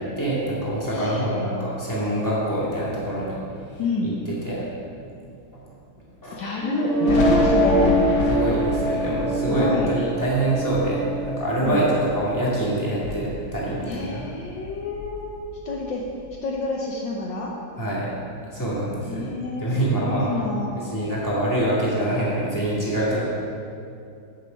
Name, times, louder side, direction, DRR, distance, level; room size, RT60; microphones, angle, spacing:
voice 1, 0.0-3.8 4.3-4.7 6.2-6.4 8.3-14.3 17.8-18.1 18.4-19.3 19.6-20.3 20.8-23.2, right 1 dB, 10° left, -7 dB, 2.2 m, -25 dB
voice 2, 0.8-1.2 3.8-4.1 6.3-8.1 9.5-9.9 11.6-11.8 13.8-15.3 15.6-16.0 16.4-17.5 19.0-21.0, left 3 dB, 70° left, -1 dB, 1.5 m, -28 dB
sound 1, 6.6-12.6, right 1 dB, 60° right, 1.8 m, -24 dB
Thunder, 7.1-12.5 12.9-14.3 14.6-16.3, left 4 dB, 85° left, 1.7 m, -31 dB
8.7 x 6.7 x 5.2 m, 2.5 s
omnidirectional pair, 2.2 m